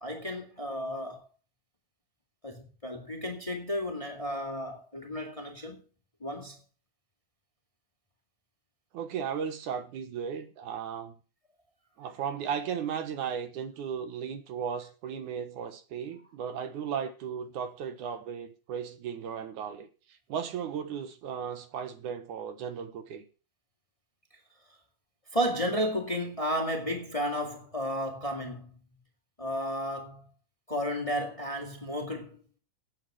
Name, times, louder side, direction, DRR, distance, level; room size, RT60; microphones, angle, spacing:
voice 1, 0.0-1.2 2.4-5.8 6.2-6.6 25.3-28.8 29.4-30.3 30.7-32.4, equal, 15° left, 1.7 m, -33 dB
voice 2, 8.9-11.2 12.0-23.2, right 7 dB, 75° right, 2.7 m, -36 dB
9.2 x 8.8 x 7.9 m
omnidirectional pair, 3.6 m